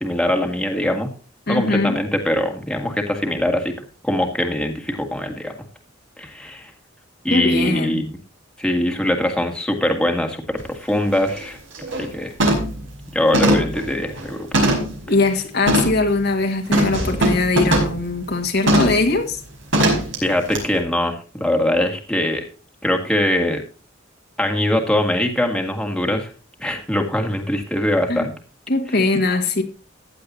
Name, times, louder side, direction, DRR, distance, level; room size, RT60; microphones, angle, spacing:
voice 1, 0.0-1.1 1.5-3.7 4.0-5.5 6.2-6.7 7.2-8.1 8.6-11.6 11.9-12.3 13.1-14.5 20.2-22.4 22.8-23.6 24.4-26.3 26.6-28.3, left 1 dB, 5° left, 2.0 m, -22 dB
voice 2, 1.5-2.0 7.3-8.0 15.1-19.4 28.1-28.3 28.7-29.6, left 3 dB, 55° left, 1.8 m, -21 dB
sound 1, 10.6-10.7 11.1-11.4 11.8-12.1 12.4-12.8 13.3-15.0 15.7-16.0 16.7-18.0 18.7-19.0 19.7-20.2 20.5-20.6, right 1 dB, 70° right, 5.1 m, -19 dB
15.5 x 10.0 x 2.7 m
head